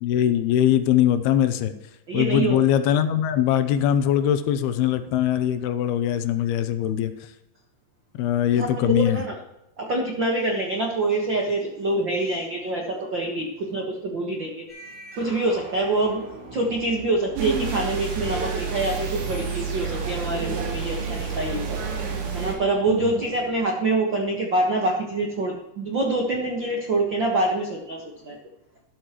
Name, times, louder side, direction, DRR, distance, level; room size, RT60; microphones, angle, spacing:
voice 1, 0.0-1.7 2.1-7.1 8.2-9.2 22.9-23.2, left 10 dB, 80° left, 10 dB, 2.7 m, -21 dB
voice 2, 2.1-2.6 8.5-9.3 9.8-14.7 15.1-16.2 16.5-21.8 22.3-28.4, right 2 dB, 70° right, 1 dB, 1.0 m, -25 dB
sound 1, 14.7-23.6, right 1 dB, 35° right, 5.9 m, -42 dB
sound 2, 17.4-22.6, right 6 dB, 85° right, 4.3 m, -29 dB
12.5 x 12.5 x 3.0 m, 0.91 s
omnidirectional pair, 4.6 m